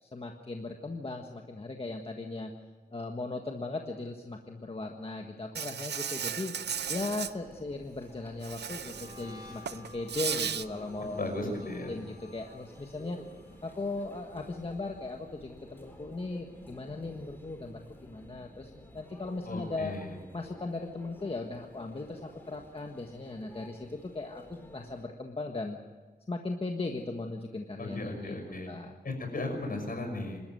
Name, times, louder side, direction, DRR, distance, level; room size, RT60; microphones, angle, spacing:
voice 1, 0.0-2.5 2.9-6.5 6.9-11.6 11.9-13.2 13.6-19.9 20.3-25.8 26.3-28.3 28.7-29.0, left 2 dB, 35° left, 3 dB, 1.5 m, -38 dB
Insect, 5.5-7.3 8.4-9.2 9.6-10.6, right 8 dB, 90° right, 0.6 m, -35 dB
Conversation / Chatter / Crowd, 6.6-25.1, equal, 10° left, 3.9 m, -52 dB
sound 1, 7.8-17.0 17.2-17.7 18.0-19.5, left 2 dB, 25° right, 7.8 m, -55 dB
voice 2, 11.0-12.0 19.5-20.1 27.8-28.7 29.0-30.4, left 2 dB, 60° left, 3 dB, 6.0 m, -36 dB
26.5 x 13.5 x 9.3 m, 1.3 s
wide cardioid pair, 120°, 17 cm